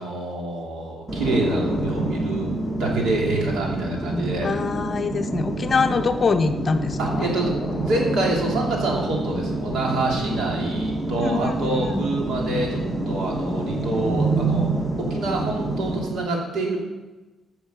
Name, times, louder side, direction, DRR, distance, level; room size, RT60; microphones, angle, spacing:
voice 1, 0.0-2.5 2.8-4.5 7.0-12.8 13.1-14.7 15.0-16.8, right 2 dB, 80° right, -1 dB, 2.8 m, -26 dB
sound 1, 1.1-16.1, right 2 dB, ahead, 1.6 m, -27 dB
voice 2, 4.4-7.3 11.2-12.1, left 4 dB, 35° left, 8 dB, 0.8 m, -24 dB
10.5 x 6.6 x 6.9 m, 1.2 s
cardioid pair, 130°, 0 cm